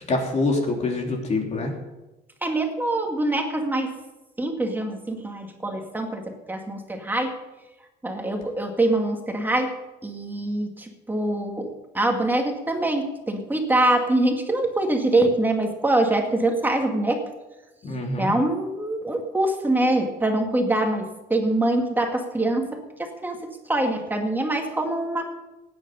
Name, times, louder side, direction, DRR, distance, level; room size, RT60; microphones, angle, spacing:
voice 1, 0.1-1.7 17.8-18.3, left 2 dB, 40° left, 1 dB, 3.3 m, -25 dB
voice 2, 2.4-4.0 4.4-7.4 8.0-9.7 10.0-17.2 18.2-25.3, right 2 dB, 10° right, 3 dB, 2.1 m, -24 dB
16.0 x 9.7 x 5.5 m, 1.0 s
cardioid pair, 110°, 17 cm